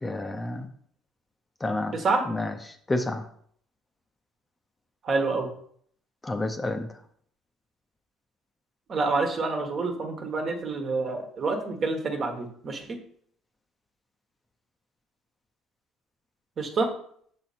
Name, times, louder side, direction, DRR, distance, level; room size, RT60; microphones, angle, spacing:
voice 1, 0.0-0.7 1.6-2.0 2.3-2.5 2.9-3.2 6.2-6.9, left 2 dB, 20° left, 7 dB, 0.6 m, -29 dB
voice 2, 1.9-2.3 5.0-5.5 8.9-13.0 16.6-16.9, right 3 dB, 45° right, 3 dB, 1.4 m, -27 dB
6.2 x 4.4 x 4.2 m, 0.62 s
supercardioid pair, 75°, 0 cm